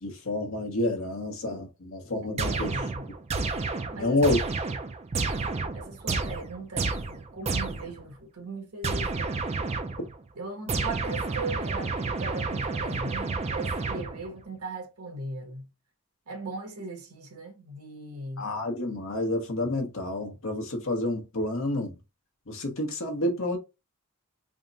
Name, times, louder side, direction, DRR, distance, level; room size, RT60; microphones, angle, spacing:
voice 1, 0.0-2.7 4.0-4.4 18.4-21.9 22.5-23.6, left 1 dB, 60° left, 0.9 m, -29 dB
voice 2, 2.3-3.1 3.9-4.2 5.7-9.3 10.3-15.7 16.3-18.5, right 2 dB, 80° right, 1.2 m, -38 dB
sound 1, 2.4-8.0 8.8-10.1 10.7-14.4, right 3 dB, 30° right, 0.4 m, -30 dB
3.5 x 2.1 x 3.9 m
head